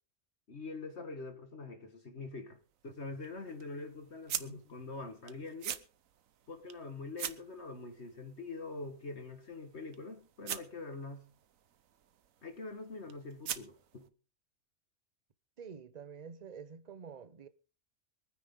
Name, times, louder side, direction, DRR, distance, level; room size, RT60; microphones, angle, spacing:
voice 1, 0.5-2.6 2.8-5.8 6.5-11.3 12.4-14.1, left 3 dB, 55° left, 1.9 m, -44 dB
sound 1, 2.5-14.1, right 10 dB, 85° right, 1.3 m, -46 dB
voice 2, 15.6-17.5, right 6 dB, 35° right, 0.8 m, -48 dB
24.0 x 9.7 x 3.7 m
omnidirectional pair, 1.4 m